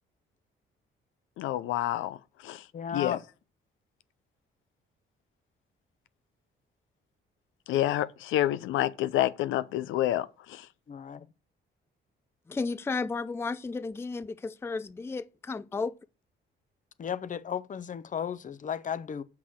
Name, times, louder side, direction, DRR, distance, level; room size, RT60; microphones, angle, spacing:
voice 1, 1.4-2.2 2.4-2.6 2.9-3.2 7.7-10.7, left 13 dB, 85° left, 0.5 m, -28 dB
voice 2, 2.7-3.2 10.9-11.3 17.0-19.2, left 8 dB, 40° left, 0.7 m, -34 dB
voice 3, 12.5-16.0, left 4 dB, 10° left, 0.4 m, -33 dB
6.1 x 6.0 x 6.3 m
cardioid pair, 90°, 20 cm